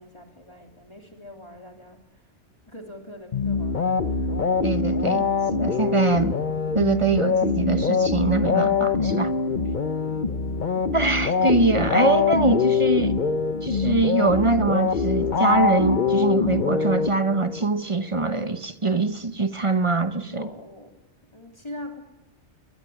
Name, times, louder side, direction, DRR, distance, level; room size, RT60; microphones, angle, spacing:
voice 1, 0.0-2.2 2.7-4.3 20.3-21.0 21.3-22.0, left 1 dB, 20° left, 3.1 m, -42 dB
sound 1, 3.3-17.6, left 5 dB, 40° left, 1.1 m, -23 dB
voice 2, 4.6-6.4 6.7-9.3 10.9-13.2 13.6-20.5, right 3 dB, 25° right, 1.0 m, -23 dB
23.5 x 20.5 x 10.0 m
omnidirectional pair, 1.3 m